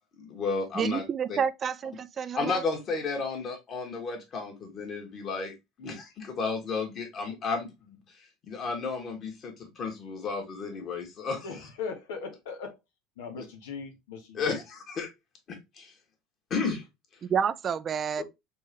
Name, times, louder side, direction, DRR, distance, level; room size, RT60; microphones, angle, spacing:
voice 1, 0.2-1.0 1.3-1.4 2.3-8.0 8.5-11.5 14.3-15.1 15.5-15.9 16.5-16.8 18.2-18.3, left 4 dB, 45° left, 2.1 m, -33 dB
voice 2, 0.8-2.6 17.2-18.2, right 7 dB, 35° right, 0.4 m, -29 dB
voice 3, 11.4-12.8 13.2-14.6, left 5 dB, 90° left, 1.4 m, -39 dB
4.5 x 3.6 x 3.0 m
supercardioid pair, 110°, 0 cm